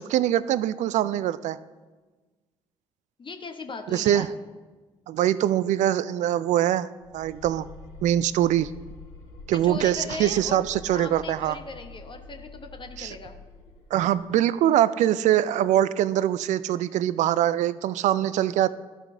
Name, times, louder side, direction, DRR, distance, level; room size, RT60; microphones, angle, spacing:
voice 1, 0.0-1.6 3.9-4.3 5.1-6.9 7.1-7.7 8.0-8.7 9.5-11.6 13.0-13.1 13.9-18.7, right 12 dB, 55° right, 17 dB, 0.4 m, -23 dB
voice 2, 3.2-4.3 9.5-10.6 10.9-13.4, left 4 dB, 35° left, 5 dB, 1.0 m, -38 dB
sound 1, 7.0-14.2, left 2 dB, 70° left, 2.4 m, -46 dB
13.0 x 5.0 x 3.7 m, 1.3 s
hypercardioid pair, 45°, 14 cm